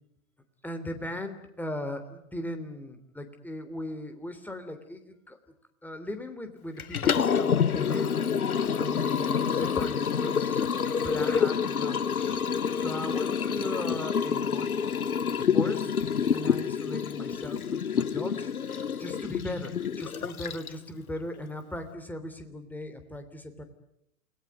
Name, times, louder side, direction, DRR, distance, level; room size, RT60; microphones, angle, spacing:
voice 1, 0.6-5.4 5.8-8.1 8.7-10.7 11.0-12.4 12.7-15.0 15.3-23.6, left 1 dB, 5° left, 7 dB, 3.2 m, -38 dB
Liquid, 6.8-20.9, left 7 dB, 80° left, 1.1 m, -28 dB
29.0 x 20.0 x 9.5 m, 0.81 s
figure-of-eight pair, 105°, 43 cm